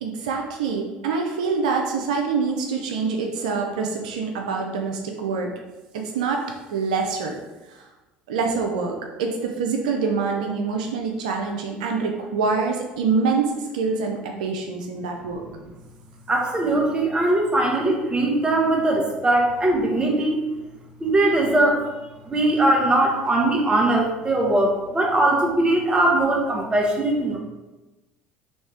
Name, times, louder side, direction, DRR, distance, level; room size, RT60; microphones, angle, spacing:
voice 1, 0.0-5.5 6.1-6.4 6.7-7.4 8.3-8.9 9.2-15.4, right 4 dB, 90° right, 2 dB, 0.5 m, -25 dB
voice 2, 16.3-20.4 21.0-21.9 22.3-27.4, right 2 dB, 20° right, 0 dB, 1.2 m, -20 dB
4.2 x 3.2 x 3.4 m, 1.1 s
hypercardioid pair, 75°, 4 cm